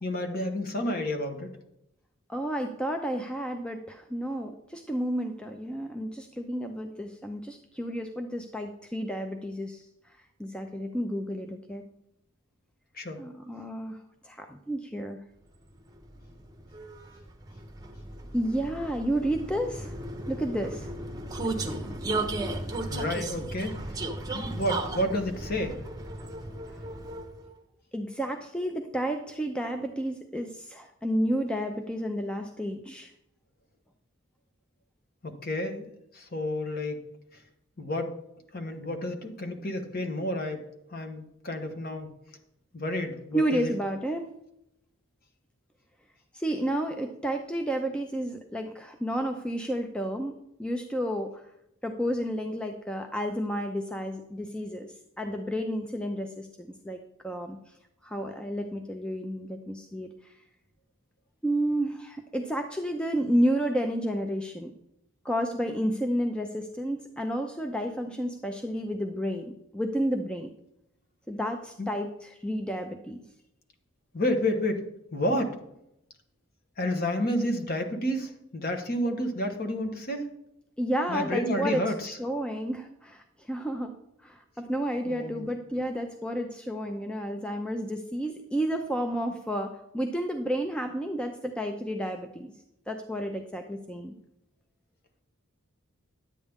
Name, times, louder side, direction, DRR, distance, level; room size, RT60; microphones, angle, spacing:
voice 1, 0.0-1.5 12.9-13.2 22.9-23.8 24.3-25.8 35.2-35.9 36.1-37.0 37.8-38.1 38.5-40.6 40.9-42.1 42.7-43.7 71.8-71.9 74.1-74.8 75.1-75.5 76.8-80.3 81.1-82.2 85.0-85.5, left 1 dB, 40° left, 5 dB, 1.2 m, -30 dB
voice 2, 2.3-9.8 10.4-11.8 13.2-14.0 14.2-15.2 18.3-19.9 20.3-20.9 21.8-21.9 27.9-33.1 43.3-44.3 46.3-51.4 51.8-57.6 58.0-60.3 61.4-64.7 65.2-70.5 71.3-73.2 80.8-81.8 82.2-83.9 84.2-92.5 92.9-94.1, equal, 5° left, 4 dB, 0.5 m, -31 dB
Vehicle, 15.7-27.5, right 2 dB, 15° right, 0.8 m, -35 dB
10.5 x 8.4 x 3.6 m, 0.81 s
head